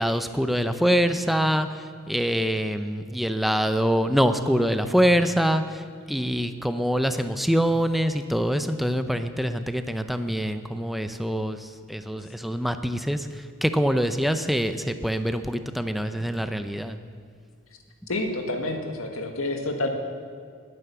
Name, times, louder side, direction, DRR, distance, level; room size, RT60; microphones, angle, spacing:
voice 1, 0.0-17.0, equal, ahead, 8 dB, 0.6 m, -25 dB
voice 2, 18.1-19.9, left 2 dB, 85° left, 4 dB, 1.9 m, -28 dB
19.5 x 9.7 x 7.0 m, 2.1 s
head